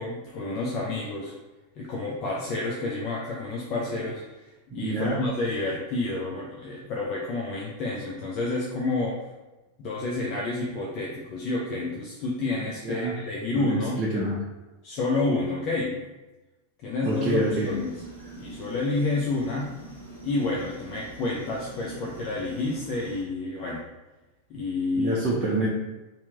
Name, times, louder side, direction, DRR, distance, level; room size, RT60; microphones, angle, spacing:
voice 1, 0.0-1.3 1.8-9.2 9.8-14.0 14.8-16.0 16.8-18.0 18.4-19.7 20.2-23.8 24.5-25.2, left 2 dB, 40° left, -4 dB, 0.5 m, -29 dB
voice 2, 4.7-5.3 12.8-13.2 13.5-14.4 17.0-17.7 25.0-25.7, right 1 dB, 30° right, -5 dB, 0.6 m, -27 dB
sound 1, 17.1-23.2, right 2 dB, 85° left, 0.8 m, -44 dB
2.9 x 2.7 x 3.3 m, 1.1 s
figure-of-eight pair, 90°, 0 cm